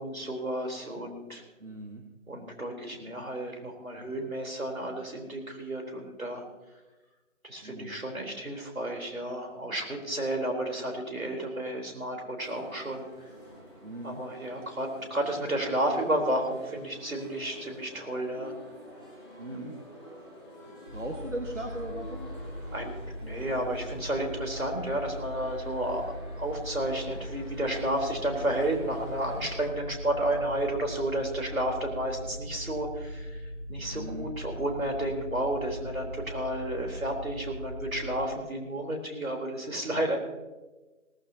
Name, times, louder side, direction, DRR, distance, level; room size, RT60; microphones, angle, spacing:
voice 1, 0.0-1.4 2.3-6.4 7.4-13.0 14.0-18.5 22.7-22.9 23.2-26.1 26.4-40.2, right 1 dB, 80° right, 1 dB, 3.9 m, -32 dB
voice 2, 1.6-2.0 7.6-8.0 13.8-14.2 14.6-14.8 19.4-20.1 20.7-22.3 33.9-34.3, right 1 dB, 60° right, 3 dB, 1.5 m, -39 dB
sound 1, 12.4-29.7, equal, 15° right, 2.8 m, -48 dB
sound 2, 20.9-38.3, equal, 40° right, 2.7 m, -40 dB
18.5 x 14.5 x 2.9 m, 1.1 s
figure-of-eight pair, 180°, 41 cm